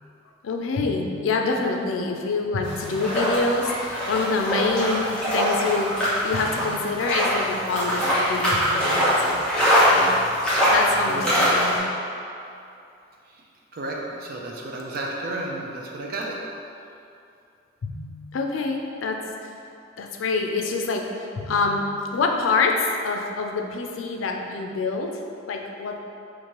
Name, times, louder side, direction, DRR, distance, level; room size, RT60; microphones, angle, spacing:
voice 1, 0.4-9.4 9.9-10.1 10.7-11.9 17.8-19.5 20.0-25.2 25.5-26.0, left 3 dB, 90° left, 2 dB, 0.4 m, -26 dB
sound 1, 2.6-11.8, equal, 5° left, 0.9 m, -22 dB
voice 2, 13.7-16.4, right 2 dB, 50° right, -1 dB, 0.5 m, -32 dB
4.4 x 2.5 x 2.9 m, 2.6 s
head